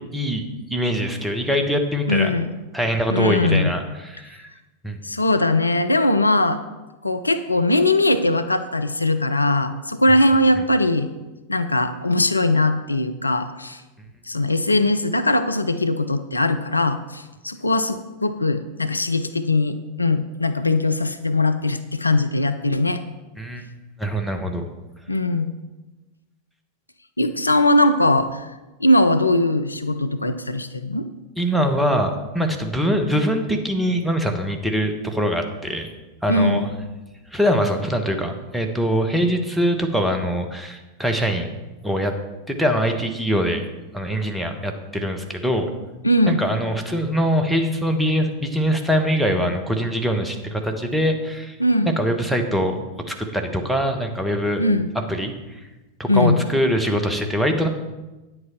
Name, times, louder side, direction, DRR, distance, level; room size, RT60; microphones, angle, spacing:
voice 1, 0.1-0.4 0.7-2.3 2.7-4.5 4.8-5.0 10.6-10.7 23.4-23.7 24.0-24.6 31.4-35.9 36.2-36.7 37.3-41.5 41.8-42.1 42.5-43.6 43.9-45.7 46.3-51.6 51.8-52.8 53.1-54.6 55.1-55.6 56.0-57.7, equal, 5° right, 4 dB, 1.2 m, -23 dB
voice 2, 2.1-2.5 3.1-3.7 5.0-6.6 7.0-11.1 11.5-13.8 14.3-23.0 25.1-25.5 27.2-28.5 28.8-31.1 36.3-36.7 46.0-46.4 51.6-51.9 54.6-54.9 56.1-56.4, left 2 dB, 80° left, 10 dB, 0.5 m, -20 dB
9.6 x 7.9 x 4.4 m, 1.1 s
figure-of-eight pair, 90°, 0 cm